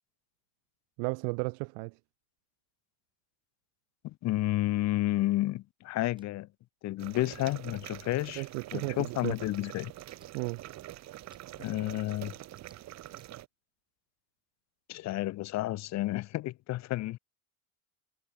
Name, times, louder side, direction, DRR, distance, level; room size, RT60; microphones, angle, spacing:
voice 1, 1.0-1.9 8.4-9.4 10.3-10.6, right 40 dB or more, 85° right, 0.7 m, -34 dB
voice 2, 4.0-6.5 6.8-8.4 8.7-9.9 11.6-12.3 14.9-17.2, left 16 dB, 40° left, 0.8 m, -31 dB
sound 1, 6.0-6.3 7.1-7.4 8.2-8.5 9.4-9.6 10.1-10.3 11.2-11.4 12.4-13.3, right 3 dB, 10° right, 5.6 m, -64 dB
sound 2, 7.0-13.5, right 14 dB, 35° right, 1.3 m, -45 dB
cardioid pair, 175°, 44 cm